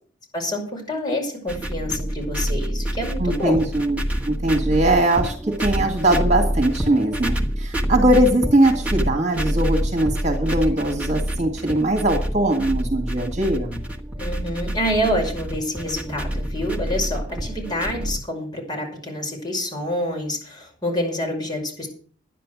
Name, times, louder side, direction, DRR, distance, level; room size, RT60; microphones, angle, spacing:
voice 1, 0.3-3.7 14.2-21.9, equal, 20° left, 0 dB, 5.9 m, -27 dB
sound 1, 1.5-18.2, equal, 5° right, 1.5 m, -27 dB
voice 2, 3.2-13.8, right 1 dB, 35° right, 4 dB, 2.3 m, -21 dB
11.5 x 10.5 x 6.3 m, 0.44 s
head